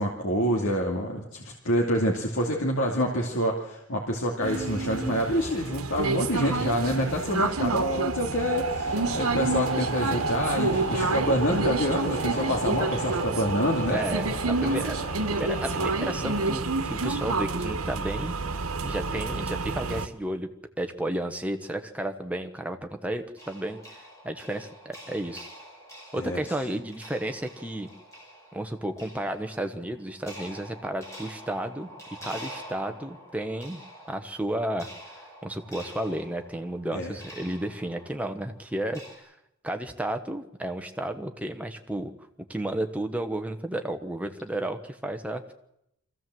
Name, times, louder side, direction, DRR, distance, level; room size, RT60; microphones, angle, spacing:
voice 1, 0.0-14.1 14.6-14.9 26.2-26.5 36.9-37.1, equal, 70° left, 0 dB, 2.5 m, -27 dB
sound 1, 4.4-20.1, right 3 dB, 85° right, 1.3 m, -29 dB
sound 2, 8.8-16.5, equal, 35° left, 7.6 m, -38 dB
voice 2, 13.9-14.9 15.3-18.4 18.8-20.5 20.8-23.8 24.2-25.5 26.1-27.9 28.5-31.9 32.2-33.8 34.1-34.9 35.4-39.3 39.6-42.1 42.5-45.4, right 1 dB, 5° right, 5 dB, 1.2 m, -32 dB
sound 3, 23.4-39.2, equal, 15° left, 6.4 m, -47 dB
23.5 x 15.5 x 7.8 m, 0.82 s
head